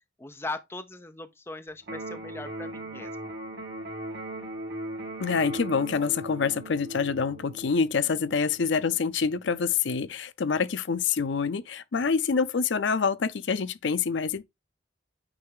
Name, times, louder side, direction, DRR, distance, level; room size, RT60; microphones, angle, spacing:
voice 1, 0.2-3.3, left 2 dB, 15° left, 0.6 m, -39 dB
Electric guitar, 1.8-9.8, right 1 dB, 65° right, 2.4 m, -39 dB
voice 2, 5.2-14.4, left 5 dB, 80° left, 0.5 m, -26 dB
8.9 x 3.2 x 3.4 m
head